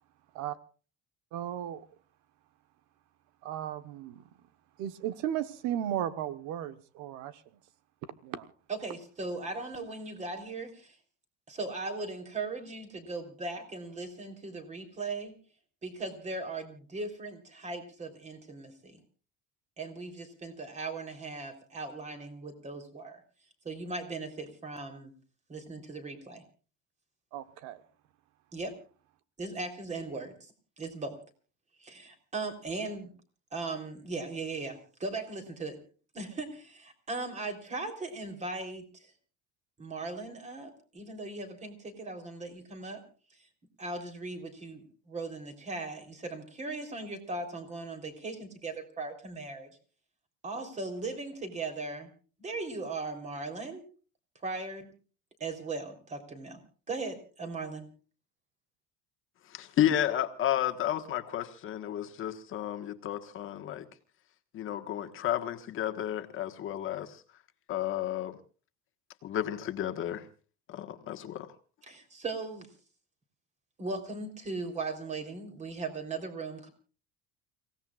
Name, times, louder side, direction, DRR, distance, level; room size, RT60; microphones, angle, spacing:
voice 1, 1.3-1.8 3.4-4.2 4.8-7.4 8.2-8.5 27.3-27.8, right 11 dB, 70° right, 1.3 m, -35 dB
voice 2, 8.7-11.0 11.5-15.3 15.8-19.0 19.8-23.2 23.6-25.1 25.5-26.4 28.5-28.7 29.4-31.2 31.8-33.1 33.5-35.8 36.1-39.1 39.8-43.0 43.3-43.5 43.8-49.7 50.4-52.1 52.4-53.8 54.4-54.9 55.4-56.6 56.9-57.9 71.8-72.7 73.8-76.7, right 3 dB, 20° right, 3.7 m, -38 dB
voice 3, 59.5-63.8 64.5-67.2 67.7-68.4 69.2-70.3 70.7-71.5, left 11 dB, 40° left, 1.5 m, -32 dB
29.5 x 17.5 x 2.4 m
cardioid pair, 160°, 31 cm